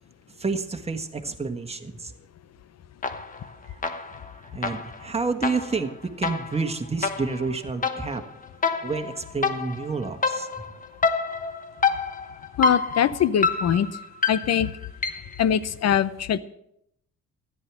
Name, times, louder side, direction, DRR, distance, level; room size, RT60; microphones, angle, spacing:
voice 1, 0.4-2.1 3.7-4.1 4.5-5.9 6.2-8.2 8.8-10.6, right 4 dB, 20° right, 6 dB, 1.5 m, -29 dB
sound 1, 3.0-3.5 3.8-15.4, left 4 dB, 25° left, 1.1 m, -28 dB
voice 2, 12.6-13.9 14.3-14.7 15.4-16.4, left 9 dB, 60° left, 15 dB, 0.9 m, -22 dB
13.5 x 10.5 x 6.1 m, 0.77 s
cardioid pair, 90°, 30 cm